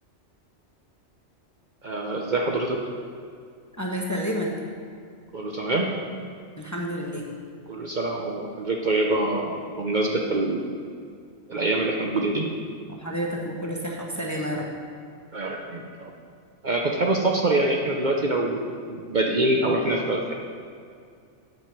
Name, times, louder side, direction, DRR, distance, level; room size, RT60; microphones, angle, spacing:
voice 1, 1.8-2.8 5.3-5.9 7.7-10.6 11.5-12.5 15.3-16.1 16.6-20.3, right 2 dB, 45° right, 0 dB, 0.7 m, -25 dB
voice 2, 3.8-4.5 6.6-7.3 12.9-14.7, equal, 15° left, -2 dB, 0.8 m, -30 dB
8.4 x 5.4 x 7.4 m, 2.2 s
omnidirectional pair, 1.3 m